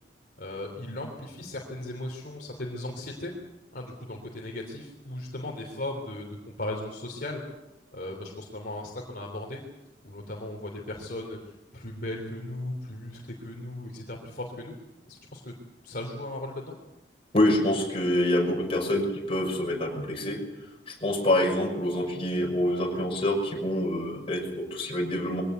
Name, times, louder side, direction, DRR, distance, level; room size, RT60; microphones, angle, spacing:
voice 1, 0.4-3.3 3.7-7.4 7.9-9.6 10.0-14.7 15.1-15.5 15.8-16.6, left 1 dB, 55° left, 1 dB, 3.3 m, -37 dB
voice 2, 17.3-20.4 20.9-25.4, left 1 dB, 35° left, 1 dB, 6.3 m, -26 dB
23.0 x 17.5 x 8.2 m, 1.0 s
head